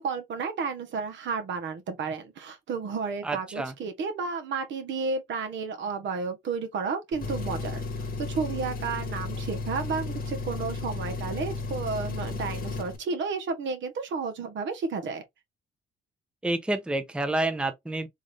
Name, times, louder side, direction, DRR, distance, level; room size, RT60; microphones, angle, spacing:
voice 1, 0.0-7.8 8.3-15.2, right 4 dB, 70° right, 1.1 m, -32 dB
voice 2, 3.2-3.7 16.4-18.1, right 2 dB, 5° right, 0.6 m, -29 dB
Engine, 7.1-13.0, left 3 dB, 45° left, 1.1 m, -33 dB
3.9 x 2.5 x 3.2 m
cardioid pair, 90°, 20 cm